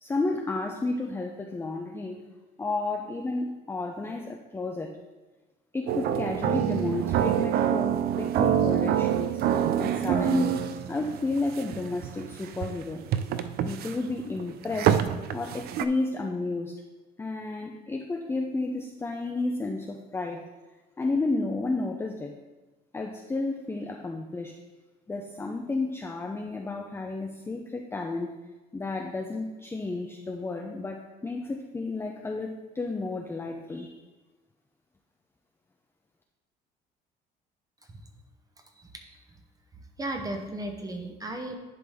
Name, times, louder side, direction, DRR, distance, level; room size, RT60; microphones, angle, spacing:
voice 1, 0.0-2.2 2.6-5.0 5.7-10.6 10.9-13.0 13.6-15.0 15.3-16.8 17.2-20.5 21.0-22.3 22.9-24.5 25.1-28.3 28.7-33.9, left 3 dB, 15° left, 2 dB, 0.5 m, -32 dB
sound 1, 5.9-15.9, right 9 dB, 65° right, 0.4 m, -26 dB
voice 2, 38.6-39.4 39.7-41.5, right 1 dB, 20° right, 4 dB, 0.8 m, -36 dB
10.5 x 3.9 x 3.5 m, 1.2 s
cardioid pair, 110°, 17 cm